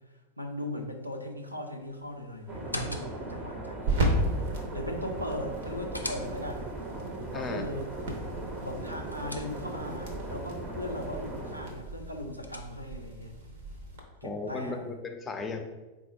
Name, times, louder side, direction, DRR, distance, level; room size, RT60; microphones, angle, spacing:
voice 1, 0.4-4.3 4.7-6.7 7.3-7.9 8.6-13.3 14.2-14.9, left 1 dB, 85° right, 4 dB, 0.5 m, -38 dB
sound 1, 1.8-14.0, right 1 dB, 60° right, 0.8 m, -36 dB
sound 2, 2.5-3.4 5.4-6.7 8.7-10.0 11.9-13.1, equal, 90° left, 0.4 m, -42 dB
sound 3, 2.5-11.7, right 2 dB, 25° right, 0.7 m, -39 dB
voice 2, 7.3-7.7 14.2-15.6, left 3 dB, 20° left, 5 dB, 0.5 m, -35 dB
4.1 x 2.4 x 4.1 m, 1.1 s
figure-of-eight pair, 90°, 0 cm